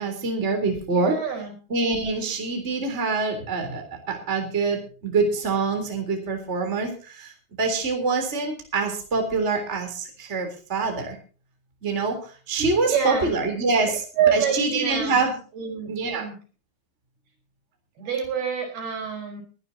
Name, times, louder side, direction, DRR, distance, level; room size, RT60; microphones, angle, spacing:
voice 1, 0.0-1.1 1.7-7.3 7.6-11.2 11.8-15.4 15.9-16.3, right 3 dB, 15° right, 4 dB, 3.4 m, -25 dB
voice 2, 0.9-1.5 12.8-13.3 13.8-16.3 18.0-19.4, right 7 dB, 60° right, 5 dB, 6.4 m, -27 dB
22.5 x 12.5 x 2.8 m, 0.37 s
omnidirectional pair, 4.9 m